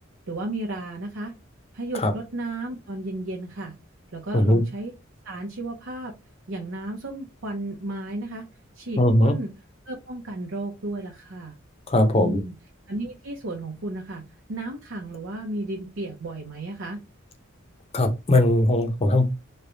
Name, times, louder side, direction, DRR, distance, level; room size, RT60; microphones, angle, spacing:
voice 1, 0.3-1.3 1.7-3.7 4.1-4.9 5.2-6.1 6.5-8.5 8.7-9.5 9.9-11.5 12.1-12.6 12.9-14.2 14.5-17.0, right 2 dB, 85° right, 0.8 m, -33 dB
voice 2, 9.0-9.3 11.9-12.4 17.9-19.3, left 1 dB, 30° left, 0.6 m, -19 dB
3.3 x 2.3 x 3.8 m
head